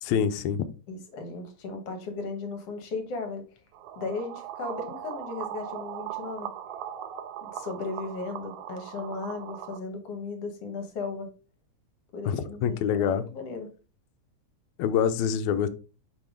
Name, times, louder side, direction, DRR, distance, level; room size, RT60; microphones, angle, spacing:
voice 1, 0.0-0.7 12.2-13.3 14.8-15.7, left 8 dB, 85° left, 1.9 m, -26 dB
voice 2, 0.9-3.4 4.0-6.5 7.4-11.3 12.1-13.7, left 3 dB, 60° left, 2.0 m, -36 dB
sound 1, 3.7-9.8, right 10 dB, 85° right, 2.0 m, -39 dB
5.7 x 5.0 x 3.6 m
omnidirectional pair, 3.4 m